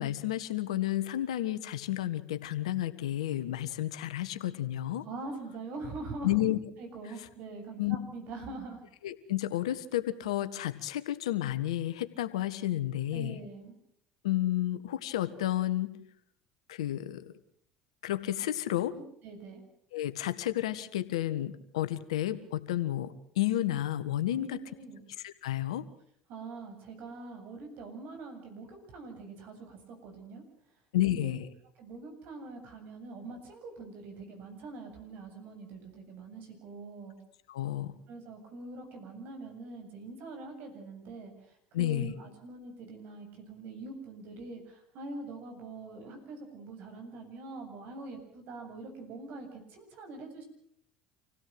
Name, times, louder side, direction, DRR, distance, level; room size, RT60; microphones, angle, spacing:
voice 1, 0.0-5.0 6.2-6.6 7.8-8.0 9.0-13.3 14.2-15.9 16.7-17.2 18.0-18.9 19.9-24.6 25.2-25.8 30.9-31.5 37.5-37.9 41.7-42.1, left 13 dB, 85° left, 12 dB, 1.5 m, -31 dB
voice 2, 5.0-6.4 6.8-8.8 13.1-13.8 18.7-19.6 24.4-25.0 26.3-30.4 31.1-31.4 31.8-37.2 38.1-50.4, right 3 dB, 65° right, 5 dB, 7.8 m, -44 dB
27.0 x 17.0 x 7.8 m, 0.68 s
hypercardioid pair, 75°, 3 cm